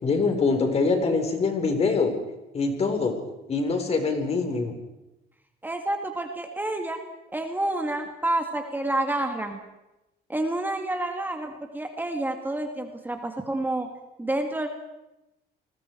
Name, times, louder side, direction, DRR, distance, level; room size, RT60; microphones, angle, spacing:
voice 1, 0.0-2.1 2.5-3.2 3.5-4.7, left 4 dB, 40° left, 6 dB, 4.2 m, -24 dB
voice 2, 5.6-7.0 7.3-9.6 10.3-13.9 14.2-14.7, right 1 dB, 10° right, 4 dB, 2.1 m, -29 dB
29.5 x 20.5 x 4.6 m, 0.96 s
cardioid pair, 110°, 17 cm